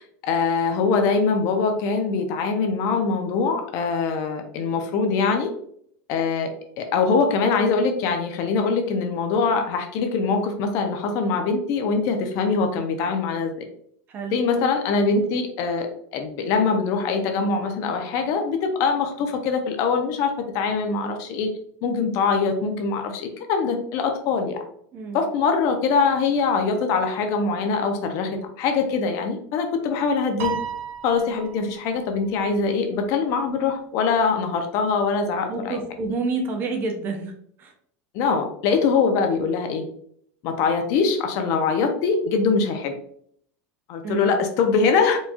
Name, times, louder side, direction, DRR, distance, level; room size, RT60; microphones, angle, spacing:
voice 1, 0.0-5.5 6.1-6.5 6.8-13.5 14.3-15.9 16.1-21.5 21.8-24.6 25.1-30.6 31.0-35.8 38.1-39.8 40.4-43.0 43.9-45.2, left 5 dB, 40° left, 5 dB, 0.5 m, -23 dB
voice 2, 14.1-14.6 24.9-25.2 35.5-37.3 37.6-37.7 44.0-44.4, right 3 dB, 25° right, 4 dB, 0.5 m, -29 dB
Piano, 30.4-31.9, right 8 dB, 85° right, 0.6 m, -32 dB
4.4 x 2.3 x 2.7 m, 0.65 s
supercardioid pair, 170°, 8 cm